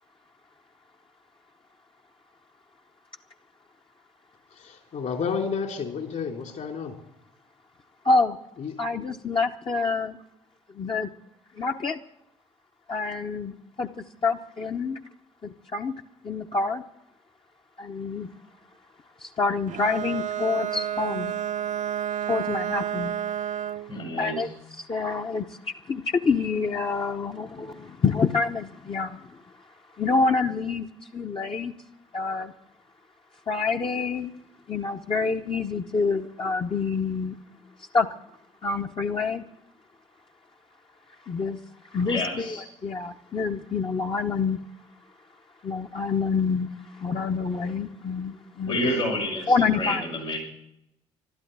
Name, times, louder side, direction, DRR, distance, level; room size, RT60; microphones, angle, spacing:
voice 1, 4.6-7.0 8.6-8.7 48.9-49.0, left 6 dB, 55° left, 4 dB, 3.6 m, -31 dB
voice 2, 8.0-8.4 8.8-10.2 10.7-11.1 11.5-12.0 12.9-15.0 15.4-15.9 16.2-16.8 17.8-18.3 19.2-21.3 22.3-23.1 23.8-23.9 24.2-24.5 24.8-30.9 31.1-31.7 32.1-32.5 33.5-34.4 34.7-37.4 37.8-38.1 38.6-39.4 41.2-42.6 42.8-44.6 45.6-48.8 49.5-50.0, left 4 dB, 35° left, 2 dB, 1.0 m, -27 dB
Bowed string instrument, 19.7-23.9, right 10 dB, 50° right, 0.7 m, -30 dB
voice 3, 23.9-24.5 42.0-42.6 48.6-50.4, left 1 dB, 85° left, -4 dB, 6.2 m, -29 dB
12.5 x 12.5 x 8.2 m, 0.80 s
hypercardioid pair, 50°, 16 cm